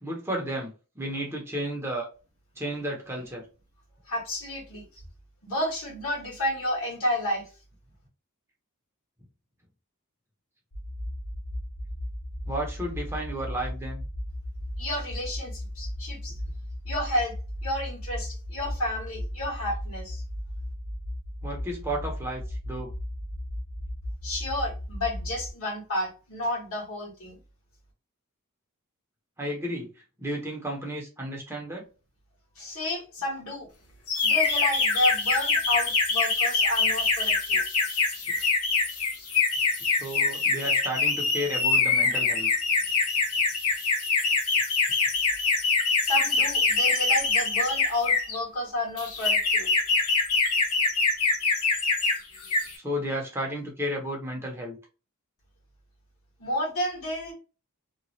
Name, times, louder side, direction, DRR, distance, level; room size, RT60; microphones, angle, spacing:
voice 1, 0.0-2.1 2.6-3.4 12.5-14.0 21.4-22.9 29.4-29.9 30.2-31.8 39.8-42.5 52.8-54.8, equal, 10° right, -1 dB, 0.8 m, -33 dB
voice 2, 4.1-4.8 5.4-7.5 14.8-16.3 16.8-17.3 17.6-20.2 24.2-27.4 32.6-33.7 34.2-37.6 46.0-49.7 56.4-57.3, left 1 dB, 65° left, -1 dB, 1.5 m, -31 dB
sound 1, 10.7-25.5, left 1 dB, 40° left, 0.7 m, -36 dB
sound 2, 34.1-48.4 49.0-52.2 52.4-52.7, left 4 dB, 85° left, 1.1 m, -24 dB
2.9 x 2.3 x 2.7 m, 0.33 s
head